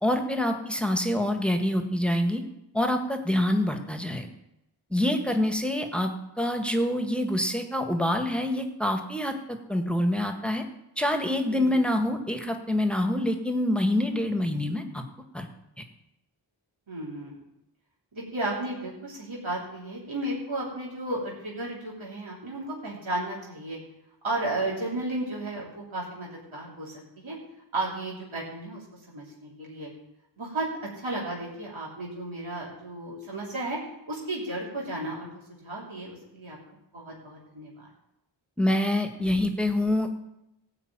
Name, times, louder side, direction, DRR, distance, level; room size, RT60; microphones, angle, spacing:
voice 1, 0.0-2.4 2.7-4.3 4.9-6.1 6.4-10.6 11.0-15.0 15.3-15.5 38.6-40.1, left 1 dB, ahead, 5 dB, 1.6 m, -26 dB
voice 2, 16.9-17.4 18.1-23.8 24.2-27.4 27.7-29.9 30.4-33.8 34.1-35.3 35.6-36.6 36.9-37.9, right 2 dB, 90° right, -5 dB, 3.3 m, -34 dB
15.0 x 5.0 x 9.0 m, 0.89 s
wide cardioid pair, 45°, 46 cm